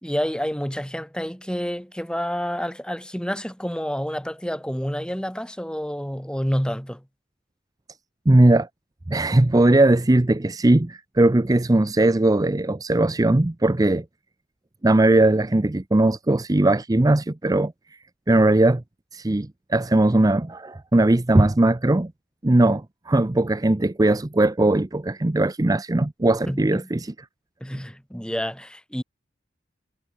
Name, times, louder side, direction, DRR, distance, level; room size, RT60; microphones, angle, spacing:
voice 1, 0.0-7.0 26.5-26.9 27.6-29.0, equal, 5° left, 5.3 m, -29 dB
voice 2, 8.3-8.7 9.1-14.0 14.8-18.0 18.3-18.8 19.1-22.1 22.4-27.1, right 2 dB, 20° right, 0.6 m, -19 dB
head